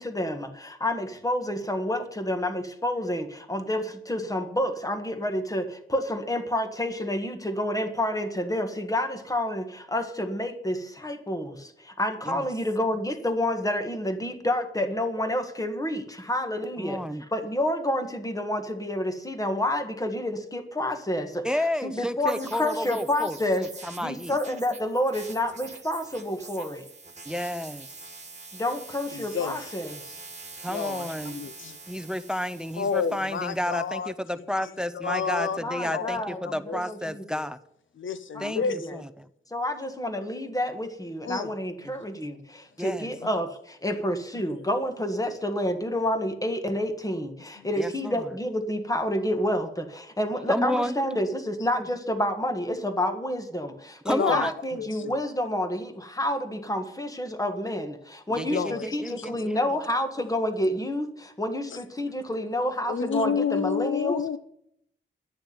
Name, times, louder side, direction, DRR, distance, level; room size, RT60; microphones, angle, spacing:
voice 1, 0.0-17.0 17.3-26.9 28.5-30.2 35.6-37.4 38.3-38.9 39.5-64.2, left 1 dB, 15° left, 1.7 m, -29 dB
voice 2, 16.8-17.2 21.4-24.4 27.3-27.9 30.6-31.4 31.9-37.6 38.4-39.3 41.8-42.0 42.8-43.1 47.8-48.3 50.5-51.0 54.1-54.5 58.3-59.7, left 1 dB, 5° right, 0.6 m, -31 dB
sound 1, 22.3-33.7, right 3 dB, 35° right, 1.7 m, -45 dB
voice 3, 29.1-29.6 30.7-31.8 32.8-34.1 34.9-35.6 35.9-36.2 36.7-36.8 38.0-39.0 41.2-41.5 54.2-54.5 54.8-55.1 58.5-58.8 62.9-64.4, left 6 dB, 70° left, 0.8 m, -29 dB
11.5 x 6.9 x 9.5 m
wide cardioid pair, 105°, 20 cm